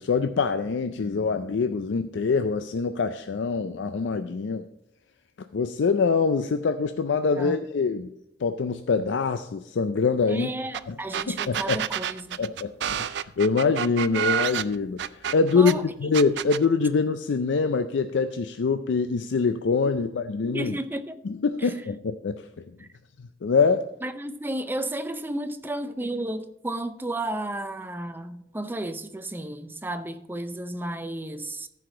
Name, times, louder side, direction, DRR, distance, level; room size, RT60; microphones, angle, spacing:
voice 1, 0.0-4.6 5.5-8.1 8.4-10.5 10.9-11.0 11.3-11.8 12.4-20.8 21.2-22.4 23.4-23.9, left 4 dB, 90° left, 0.4 m, -24 dB
voice 2, 10.3-12.4 15.5-16.1 20.4-21.2 21.6-21.7 24.0-31.7, right 1 dB, 10° right, 0.5 m, -33 dB
sound 1, 10.7-10.8 11.1-15.7 16.1-16.6, right 9 dB, 65° right, 0.4 m, -28 dB
14.0 x 4.9 x 4.9 m
head